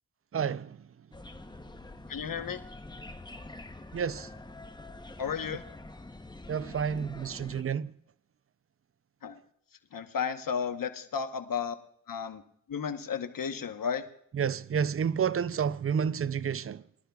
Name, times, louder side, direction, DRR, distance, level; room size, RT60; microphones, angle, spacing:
voice 1, 0.3-0.8 3.9-4.3 6.5-7.9 14.3-16.8, right 7 dB, 40° right, 0.4 m, -30 dB
sound 1, 1.1-7.6, left 2 dB, 15° left, 0.8 m, -46 dB
voice 2, 2.1-2.6 5.2-5.6 9.2-9.4 9.9-11.7 12.1-12.4 12.7-14.0, left 7 dB, 70° left, 1.0 m, -33 dB
23.5 x 11.5 x 2.3 m
cardioid pair, 60°, 34 cm